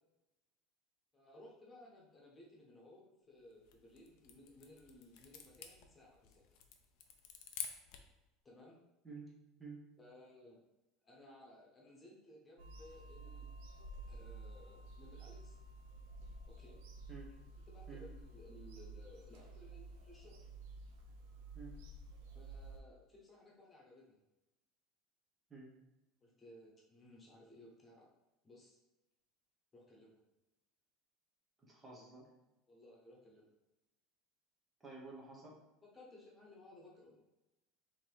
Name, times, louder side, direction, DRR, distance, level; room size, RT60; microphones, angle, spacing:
voice 1, 1.1-6.4 8.4-8.8 10.0-10.6 11.0-13.5 14.1-15.6 16.5-16.8 17.7-20.5 22.3-24.2 26.2-28.1 28.4-28.8 29.7-30.2 32.7-33.5 35.8-37.2, left 1 dB, 20° left, -3 dB, 1.3 m, -59 dB
sound 1, 3.5-8.2, left 8 dB, 65° left, 0.6 m, -50 dB
voice 2, 9.0-9.9 17.1-17.3 17.9-18.0 21.5-21.8 25.5-25.7 31.6-32.3 34.8-35.6, right 3 dB, 15° right, -4 dB, 1.1 m, -51 dB
Bird vocalization bird call bird song / Telephone, 12.6-22.8, right 2 dB, 85° right, 0.7 m, -52 dB
3.8 x 3.0 x 4.6 m, 0.99 s
supercardioid pair, 135°, 0 cm